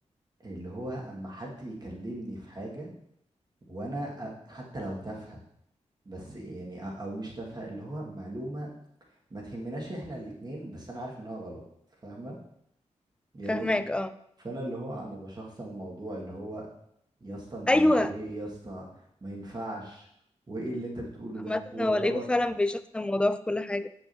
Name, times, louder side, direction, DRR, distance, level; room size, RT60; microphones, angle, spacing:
voice 1, 0.4-2.9 3.7-5.4 6.1-8.7 9.3-11.6 12.0-12.4 13.3-13.7 14.4-16.7 17.2-18.9 19.2-20.1 20.5-22.2, right 1 dB, 35° right, -2 dB, 1.8 m, -38 dB
voice 2, 13.5-14.1 17.7-18.1 21.5-23.9, left 1 dB, 10° left, 13 dB, 0.3 m, -26 dB
7.3 x 6.1 x 2.8 m, 0.73 s
wide cardioid pair, 95°, 12 cm